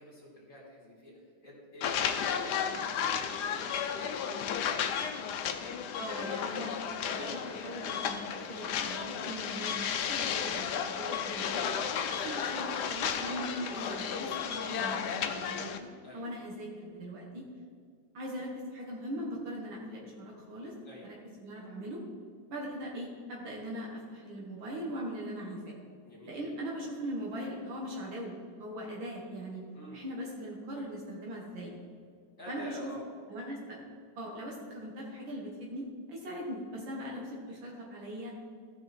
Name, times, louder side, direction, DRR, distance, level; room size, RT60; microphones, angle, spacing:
voice 1, 0.0-4.7 9.6-9.9 10.3-10.6 16.0-16.3 20.8-21.1 26.0-26.9 29.7-30.0 32.4-33.1, left 1 dB, 40° left, -7 dB, 2.3 m, -48 dB
sound 1, 1.8-15.8, left 7 dB, 70° left, 1.1 m, -33 dB
voice 2, 6.0-6.8 7.1-11.6 12.1-15.9 16.1-17.4 18.1-20.7 21.0-22.0 22.5-25.7 26.3-29.6 29.9-31.7 32.5-32.9 33.3-33.8 34.2-38.3, equal, 75° right, -3 dB, 2.2 m, -40 dB
15.5 x 5.8 x 4.2 m, 2.1 s
omnidirectional pair, 2.2 m